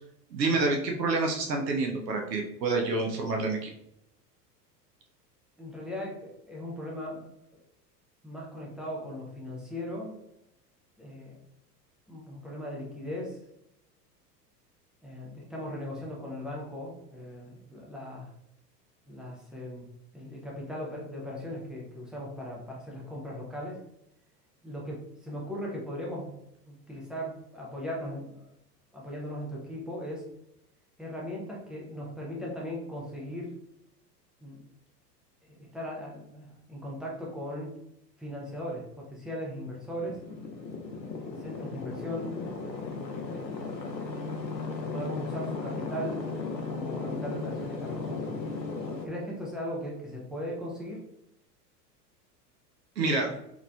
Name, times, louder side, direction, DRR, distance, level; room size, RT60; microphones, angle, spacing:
voice 1, 0.3-3.7 53.0-53.3, right 3 dB, 80° right, 2 dB, 0.7 m, -28 dB
voice 2, 5.6-7.6 8.2-10.2 11.0-11.4 12.1-13.4 15.0-18.3 19.1-19.9 20.1-23.8 24.6-26.3 26.7-28.5 28.9-30.3 31.0-33.6 34.4-34.6 35.4-37.8 38.2-40.2 41.1-42.4 43.3-43.9 44.8-46.2 46.7-48.4 49.0-51.0, equal, ahead, -4 dB, 0.3 m, -38 dB
sound 1, 39.7-49.1, left 4 dB, 90° left, 0.7 m, -36 dB
3.8 x 3.0 x 2.2 m, 0.80 s
figure-of-eight pair, 85°, 49 cm